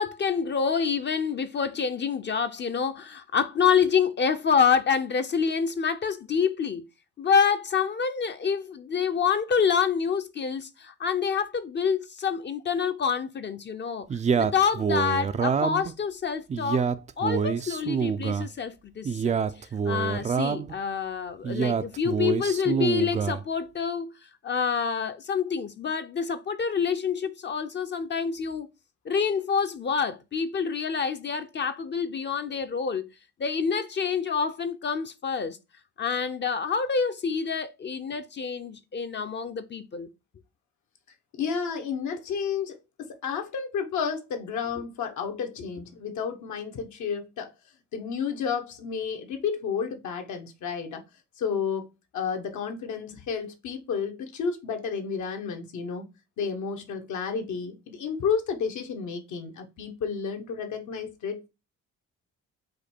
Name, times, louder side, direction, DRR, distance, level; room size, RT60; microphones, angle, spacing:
voice 1, 0.0-6.9 7.2-16.9 17.2-28.7 29.1-33.1 33.4-35.6 36.0-40.1, left 6 dB, 35° left, 0.5 m, -27 dB
Male speech man speaking, 14.1-15.9 16.5-18.5 19.0-20.7 21.4-23.4, right 6 dB, 25° right, 0.3 m, -26 dB
voice 2, 41.3-47.5 47.9-51.0 51.4-56.1 56.4-61.5, left 6 dB, 75° left, 1.1 m, -31 dB
5.1 x 2.2 x 4.3 m
cardioid pair, 90°, 30 cm